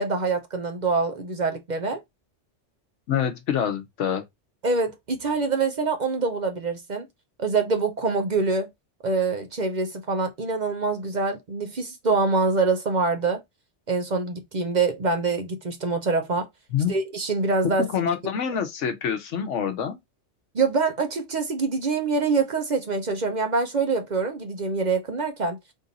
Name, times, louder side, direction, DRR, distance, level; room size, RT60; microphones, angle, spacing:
voice 1, 0.0-2.0 4.6-7.1 7.4-8.7 9.0-13.4 13.9-16.5 16.9-17.8 20.5-25.6, right 4 dB, 45° right, 0.7 m, -25 dB
voice 2, 3.1-4.2 16.7-16.9 17.6-20.0, left 8 dB, 85° left, 1.2 m, -26 dB
3.7 x 2.6 x 4.0 m
omnidirectional pair, 1.2 m